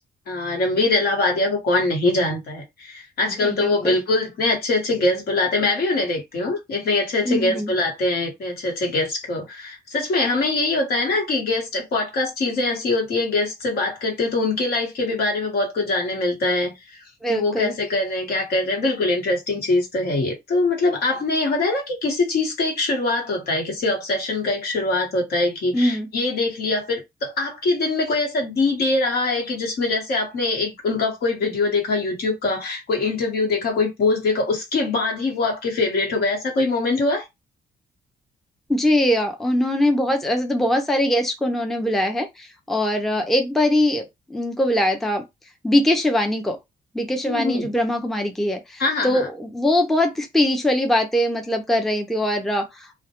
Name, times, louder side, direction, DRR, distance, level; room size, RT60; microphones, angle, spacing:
voice 1, 0.3-16.7 17.3-37.2 47.2-47.7 48.8-49.3, left 2 dB, 70° left, 1.1 m, -23 dB
voice 2, 3.4-4.0 7.2-7.7 17.2-17.7 25.7-26.1 38.7-45.2 45.6-46.6 46.9-52.9, left 1 dB, ahead, 0.4 m, -22 dB
2.1 x 2.1 x 2.8 m
cardioid pair, 130°, 17 cm